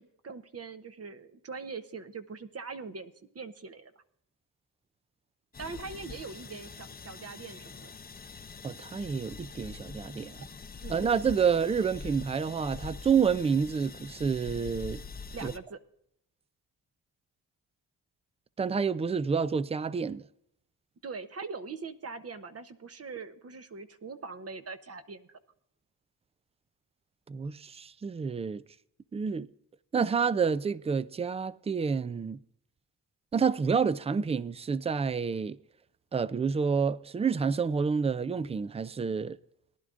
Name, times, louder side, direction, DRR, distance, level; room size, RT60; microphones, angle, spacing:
voice 1, 0.0-3.9 5.6-7.9 10.8-11.1 15.3-15.8 21.0-25.4, right 4 dB, 40° right, 0.8 m, -42 dB
sound 1, 5.5-15.6, left 5 dB, 25° left, 0.6 m, -44 dB
voice 2, 8.6-10.4 10.9-15.0 15.4-15.5 18.6-20.2 27.3-28.6 29.1-29.5 29.9-32.4 33.3-35.6 36.1-39.4, right 6 dB, 15° right, 0.3 m, -29 dB
19.0 x 11.0 x 2.5 m
cardioid pair, 80°, 38 cm